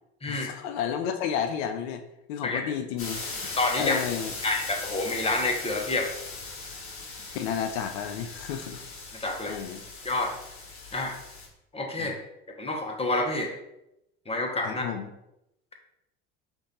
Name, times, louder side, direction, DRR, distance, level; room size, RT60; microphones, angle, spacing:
voice 1, 0.3-2.0 2.3-3.2 3.8-4.3 7.3-8.8 9.5-9.8 12.0-12.1 14.6-15.1, left 8 dB, 70° left, 8 dB, 0.6 m, -31 dB
sound 1, 3.0-11.5, left 3 dB, 40° left, 1.4 m, -39 dB
voice 2, 3.6-4.0 4.4-6.1 9.2-9.6 10.0-10.3 10.9-11.1 11.7-12.2 12.5-13.5 14.3-14.8, left 2 dB, 15° left, 2 dB, 1.1 m, -28 dB
5.2 x 2.6 x 3.8 m, 0.85 s
hypercardioid pair, 75°, 34 cm